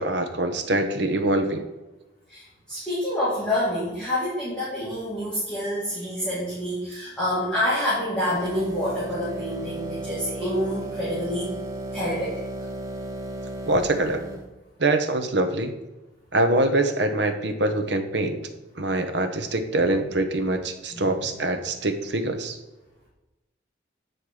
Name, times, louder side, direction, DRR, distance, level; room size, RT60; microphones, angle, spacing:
voice 1, 0.0-1.7 2.8-2.9 13.7-14.2 14.8-15.7 16.3-18.4 18.8-22.6, right 2 dB, 65° right, 7 dB, 0.9 m, -24 dB
voice 2, 2.3-11.5 11.9-12.3 20.9-21.1, left 1 dB, 5° left, -10 dB, 2.1 m, -27 dB
sound 1, 8.3-14.5, right 1 dB, 15° right, 0.9 m, -34 dB
9.3 x 4.5 x 4.8 m, 1.1 s
head